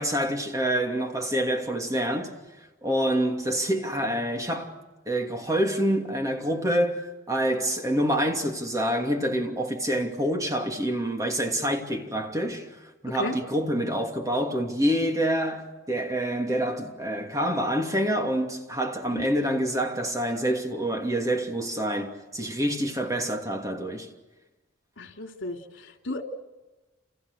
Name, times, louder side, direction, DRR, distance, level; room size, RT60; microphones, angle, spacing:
voice 1, 0.0-2.4 2.8-4.7 5.1-12.7 13.0-24.1, equal, 15° right, 2.7 m, -27 dB
voice 2, 13.1-13.4 19.0-19.3 25.0-26.2, left 2 dB, 70° left, 3.4 m, -34 dB
29.5 x 29.5 x 6.7 m
head